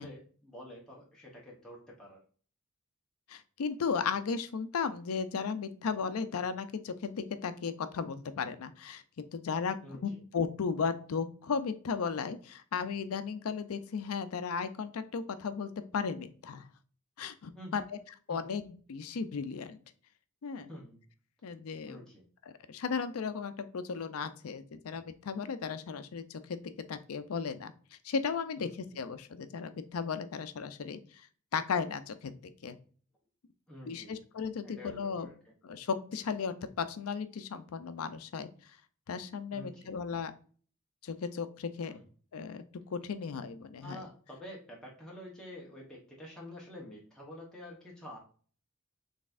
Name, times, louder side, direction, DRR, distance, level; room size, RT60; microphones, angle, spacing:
voice 1, 0.0-2.2 9.8-10.2 17.5-17.9 18.3-18.6 20.7-21.0 21.9-22.3 28.6-29.0 33.7-34.2 34.6-35.5 39.5-39.9 41.9-42.0 43.8-48.2, left 1 dB, 5° left, -4 dB, 0.9 m, -48 dB
voice 2, 3.3-9.8 10.0-16.7 17.2-17.8 18.3-19.8 20.4-20.7 21.4-22.0 22.5-26.6 26.9-27.7 28.0-31.3 31.5-32.3 32.6-32.8 33.9-35.3 35.6-38.5 39.1-40.3 41.0-41.9 42.3-42.6 42.9-44.0, left 5 dB, 75° left, 12 dB, 0.5 m, -35 dB
4.1 x 3.4 x 2.5 m, 0.43 s
head